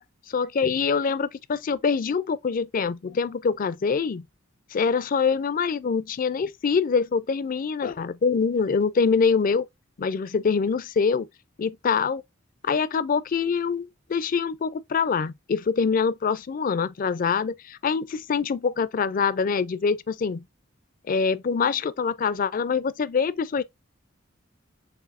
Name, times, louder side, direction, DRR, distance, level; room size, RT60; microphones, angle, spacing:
voice 1, 0.3-4.2 4.7-9.6 10.0-11.3 11.6-12.2 12.6-20.5 21.1-23.6, left 5 dB, 45° left, 0.4 m, -24 dB
6.7 x 2.6 x 2.5 m
head